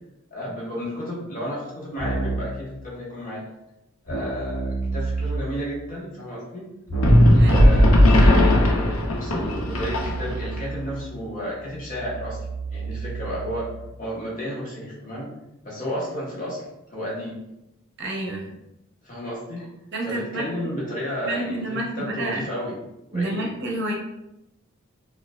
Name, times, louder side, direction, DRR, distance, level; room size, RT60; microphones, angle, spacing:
voice 1, 0.3-3.4 4.0-6.7 7.3-12.4 12.7-13.7 14.0-15.3 15.6-16.6 16.9-17.4 19.0-19.7 20.0-22.8 23.1-23.5, equal, 40° left, -6 dB, 1.1 m, -32 dB
Keyboard (musical), 2.0-2.6 4.1-5.7 6.9-13.9, right 3 dB, 60° left, 1.1 m, -30 dB
sound 1, 7.0-10.5, left 1 dB, 80° left, 0.7 m, -16 dB
voice 2, 18.0-18.6 19.9-20.7 21.2-22.4 23.1-23.9, right 1 dB, 50° right, -1 dB, 0.7 m, -29 dB
4.5 x 2.4 x 2.3 m, 0.87 s
head